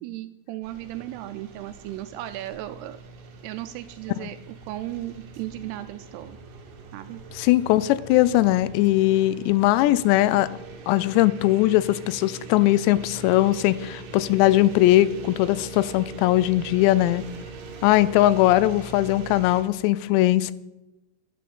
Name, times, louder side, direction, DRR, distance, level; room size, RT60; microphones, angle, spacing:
voice 1, 0.0-3.0 3.4-6.4 6.9-7.2, right 14 dB, 80° right, 11 dB, 2.4 m, -36 dB
sound 1, 0.6-19.6, right 4 dB, 60° right, 2.7 m, -42 dB
voice 2, 7.3-10.5 10.9-17.2 17.8-20.5, left 15 dB, 85° left, 16 dB, 2.8 m, -20 dB
11.5 x 9.2 x 6.9 m, 1.0 s
omnidirectional pair, 5.0 m